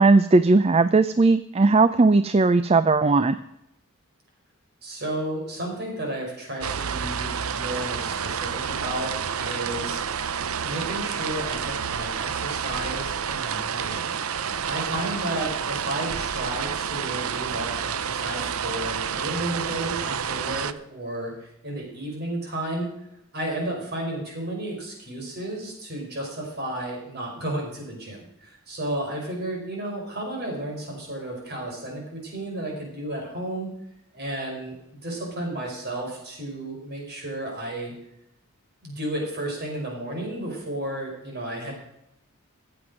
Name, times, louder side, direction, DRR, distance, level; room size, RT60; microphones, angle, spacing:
voice 1, 0.0-3.4, right 3 dB, 25° right, 13 dB, 0.4 m, -18 dB
voice 2, 4.8-9.1 9.4-10.3 10.6-21.3 21.6-22.9 23.3-33.7 34.1-34.7 35.0-37.9 38.8-41.7, right 1 dB, 45° right, 0 dB, 5.3 m, -33 dB
sound 1, 6.6-20.7, right 7 dB, 70° right, 0.7 m, -29 dB
15.0 x 7.9 x 6.4 m, 0.82 s
head